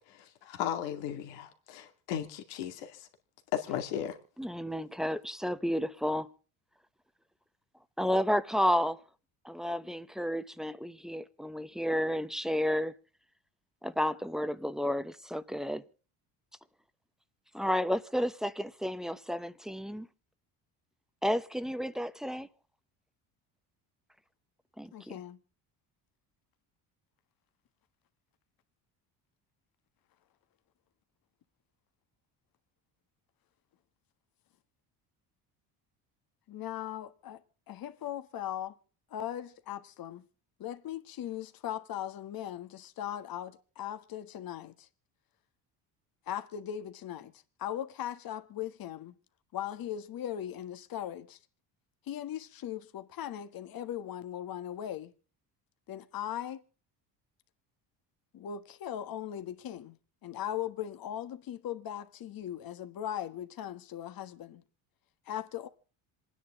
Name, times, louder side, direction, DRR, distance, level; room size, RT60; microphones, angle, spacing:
voice 1, 0.1-3.1 3.5-4.2, left 10 dB, 85° left, 2.4 m, -36 dB
voice 2, 4.4-6.3 8.0-9.0 9.4-12.9 13.8-15.8 17.5-20.1 21.2-22.5 24.8-25.2, equal, ahead, 0.9 m, -31 dB
voice 3, 24.9-25.4 36.5-37.4 37.7-38.7 39.1-40.2 40.6-44.7 46.3-47.3 47.6-49.1 49.5-51.4 52.1-55.1 55.9-56.6 58.3-60.0 60.2-64.6 65.3-65.7, left 11 dB, 55° left, 1.5 m, -39 dB
27.0 x 10.0 x 3.6 m
supercardioid pair, 90°, 43 cm